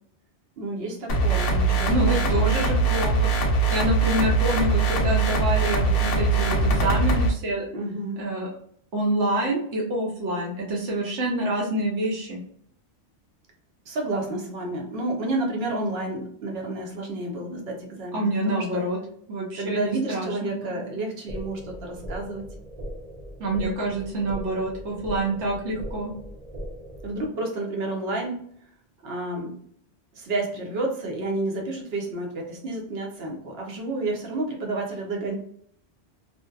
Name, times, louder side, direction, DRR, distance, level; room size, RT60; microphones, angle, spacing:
voice 1, 0.6-2.5 7.7-8.3 13.9-18.8 19.6-22.5 27.0-28.4 29.0-29.6 30.1-35.4, right 2 dB, 65° right, 1 dB, 0.9 m, -30 dB
sound 1, 1.1-7.3, right 3 dB, 65° left, 0.7 m, -22 dB
voice 2, 1.9-3.3 3.7-7.7 8.2-8.5 8.9-12.4 18.1-19.0 19.3-20.5 23.4-26.1, right 1 dB, 90° right, -3 dB, 1.0 m, -27 dB
sound 2, 21.3-27.3, equal, 45° right, 0.6 m, -38 dB
2.7 x 2.2 x 2.2 m, 0.64 s
omnidirectional pair, 1.1 m